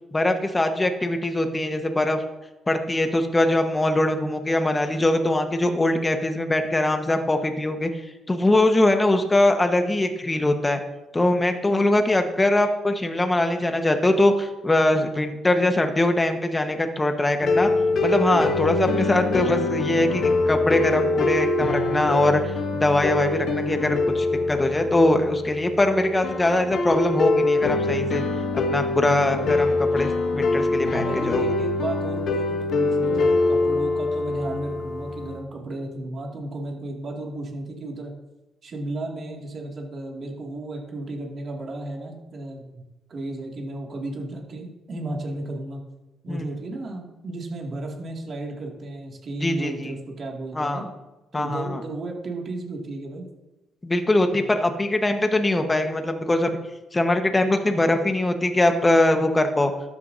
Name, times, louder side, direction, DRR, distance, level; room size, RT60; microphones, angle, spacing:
voice 1, 0.1-2.2 2.7-10.8 11.1-17.7 18.0-28.2 28.7-31.4 46.3-46.5 49.4-49.9 50.5-50.8 51.3-51.8 53.8-56.6 56.9-59.7, left 1 dB, 20° left, 6 dB, 1.2 m, -22 dB
sound 1, 17.4-35.4, left 3 dB, 60° left, 1.0 m, -24 dB
voice 2, 30.9-38.1 38.6-42.8 43.1-45.8 46.2-50.9 51.3-53.3, right 2 dB, 50° right, 0 dB, 2.2 m, -34 dB
13.0 x 9.4 x 2.7 m, 1.0 s
cardioid pair, 90°, 0 cm